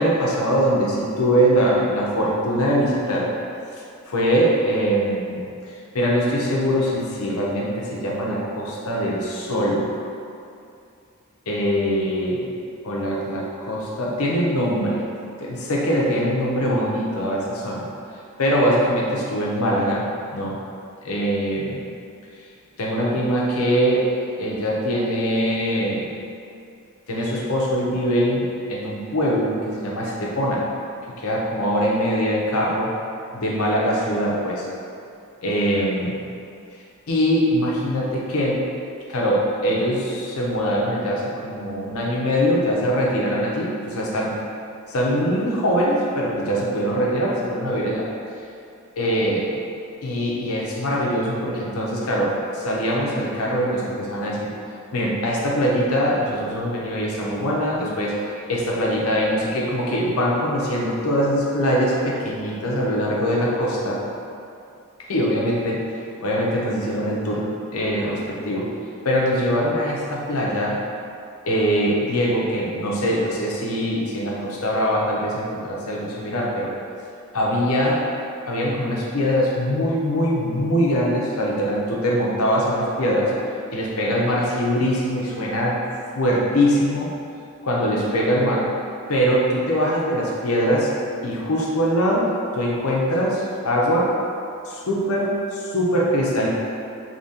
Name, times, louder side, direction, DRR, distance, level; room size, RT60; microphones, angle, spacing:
voice 1, 0.0-3.3 4.1-5.4 5.9-9.9 11.5-12.5 12.8-15.0 15.4-17.9 18.4-20.0 20.3-20.6 21.0-21.8 22.8-24.0 24.4-26.1 27.1-30.7 31.2-32.9 33.3-34.7 35.4-36.2 37.1-38.6 39.1-44.3 44.9-48.1 49.0-49.4 50.0-54.5 54.9-64.0 65.1-65.8 66.2-67.5 67.7-68.7 69.0-70.8 71.5-76.7 77.3-78.0 78.5-83.3 83.7-85.8 86.1-87.1 87.6-88.7 89.1-90.9 91.2-94.1 94.7-96.5, equal, 85° left, -3 dB, 0.8 m, -22 dB
5.0 x 2.9 x 2.8 m, 2.5 s
head